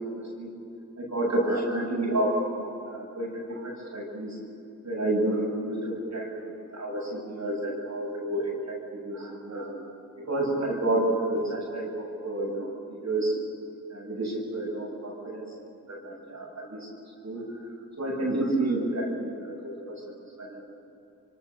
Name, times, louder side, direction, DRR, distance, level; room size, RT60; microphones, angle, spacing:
voice 1, 0.1-0.5 1.0-4.3 4.8-6.3 6.7-9.7 10.3-13.3 13.9-15.4 15.9-16.8 17.2-17.4 18.0-20.6, right 1 dB, 60° right, -3 dB, 7.9 m, -30 dB
26.0 x 23.5 x 7.1 m, 2.6 s
cardioid pair, 50°, 32 cm